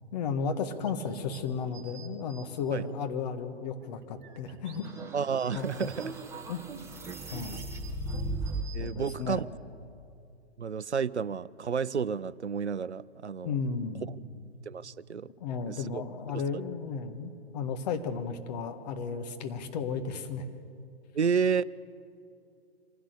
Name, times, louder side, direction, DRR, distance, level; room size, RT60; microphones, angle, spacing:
voice 1, 0.1-4.9 5.5-5.9 6.5-6.6 7.3-7.7 8.8-9.4 13.4-14.1 15.4-20.4, left 5 dB, 40° left, 7 dB, 1.5 m, -34 dB
sound 1, 0.9-2.4 2.9-3.0 3.7-4.9 5.3-6.1 6.7-9.1, right 7 dB, 45° right, 3.7 m, -53 dB
sound 2, 4.8-8.9, right 2 dB, 10° right, 1.1 m, -37 dB
voice 2, 5.1-6.1 8.7-9.5 10.6-13.5 14.7-15.3 15.7-16.0 21.1-21.6, right 6 dB, 85° right, 19 dB, 0.6 m, -30 dB
25.0 x 15.5 x 6.8 m, 2.5 s
figure-of-eight pair, 120°, 33 cm